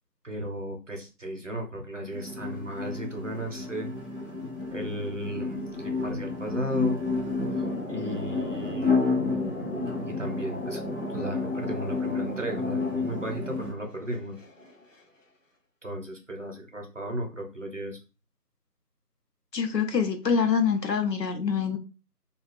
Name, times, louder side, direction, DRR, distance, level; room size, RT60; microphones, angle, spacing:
voice 1, 0.2-3.9 4.7-5.6 6.0-7.0 7.9-9.1 10.1-10.8 11.1-14.4 15.8-18.0, equal, 50° right, 0.7 m, -35 dB
sound 1, 2.1-13.7, left 3 dB, 35° left, 0.9 m, -31 dB
sound 2, 6.9-15.0, left 1 dB, 55° left, 0.5 m, -38 dB
voice 2, 19.5-21.8, left 6 dB, 90° left, 0.8 m, -25 dB
2.7 x 2.4 x 3.2 m
figure-of-eight pair, 175°, 48 cm